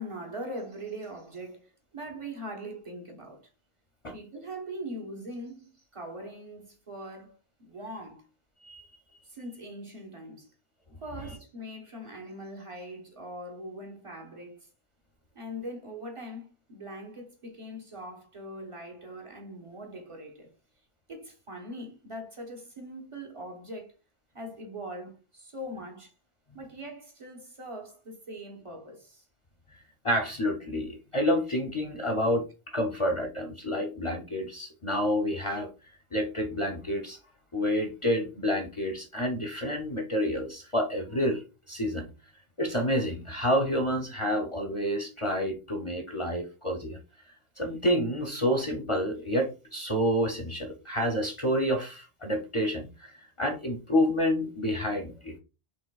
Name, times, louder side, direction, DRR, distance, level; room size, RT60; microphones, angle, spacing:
voice 1, 0.0-3.5 4.1-7.3 7.6-8.2 9.2-10.5 11.0-14.7 15.3-20.5 21.1-24.0 24.3-26.1 26.5-29.3, equal, 30° right, 1.1 m, -41 dB
voice 2, 30.0-35.7 36.1-37.2 37.5-42.1 42.6-47.0 47.6-55.4, equal, 35° left, 0.6 m, -29 dB
5.4 x 3.2 x 2.3 m
omnidirectional pair, 1.0 m